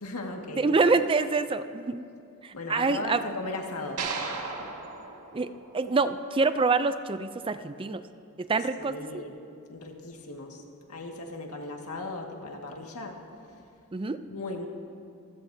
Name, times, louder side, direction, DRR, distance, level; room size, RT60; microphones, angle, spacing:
voice 1, 0.0-0.7 2.5-4.0 4.6-4.7 8.8-9.3 9.7-10.6 10.9-13.2 13.5-13.6 14.3-14.7, left 2 dB, 85° left, 1 dB, 1.9 m, -37 dB
voice 2, 0.6-2.0 2.4-3.2 5.3-8.0 8.4-9.1 13.9-14.2, right 4 dB, 25° right, 11 dB, 0.4 m, -26 dB
sound 1, 4.0-6.3, right 4 dB, 90° right, 1.9 m, -36 dB
25.5 x 16.0 x 2.8 m, 2.4 s
head